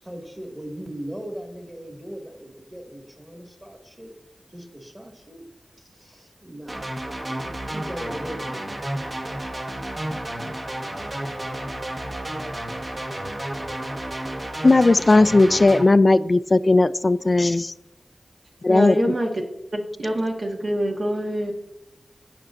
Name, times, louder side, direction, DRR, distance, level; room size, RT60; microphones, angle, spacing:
voice 1, 0.0-4.1 4.5-5.4 5.8-6.8 7.2-8.7, equal, 25° right, 2 dB, 2.1 m, -38 dB
sound 1, 6.7-15.8, right 1 dB, 55° right, 1.3 m, -31 dB
voice 2, 14.6-17.7 18.6-19.0, left 2 dB, 50° left, 15 dB, 0.3 m, -16 dB
voice 3, 18.7-19.4 19.7-21.5, equal, 75° right, 1 dB, 1.5 m, -25 dB
16.5 x 5.8 x 2.6 m, 0.92 s
cardioid pair, 45°, 0 cm